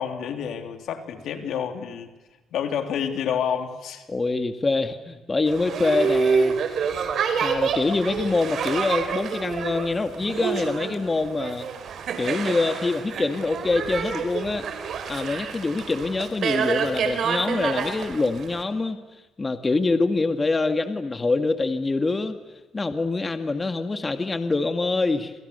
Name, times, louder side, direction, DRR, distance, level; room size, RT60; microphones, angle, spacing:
voice 1, 0.0-2.1 2.5-4.0 16.8-16.9, left 8 dB, 75° left, 6 dB, 3.1 m, -29 dB
voice 2, 4.1-6.6 7.4-11.7 12.2-14.6 15.1-19.0 19.4-22.4 22.7-25.3, left 3 dB, 25° left, 8 dB, 2.0 m, -25 dB
Boat Water vehicle, 5.5-18.6, right 6 dB, 65° right, 4.5 m, -27 dB
28.5 x 27.5 x 6.9 m, 1.1 s
cardioid pair, 90°, 0 cm